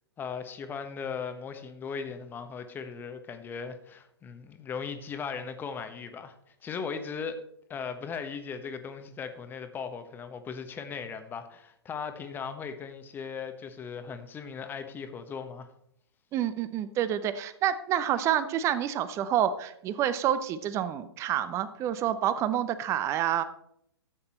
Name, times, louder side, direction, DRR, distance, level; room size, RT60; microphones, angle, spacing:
voice 1, 0.2-6.3 6.6-7.4 7.7-15.7, left 6 dB, 15° left, 8 dB, 1.1 m, -38 dB
voice 2, 16.3-23.4, right 10 dB, 20° right, 13 dB, 0.8 m, -28 dB
13.5 x 8.7 x 4.3 m, 0.73 s
figure-of-eight pair, 120°, 14 cm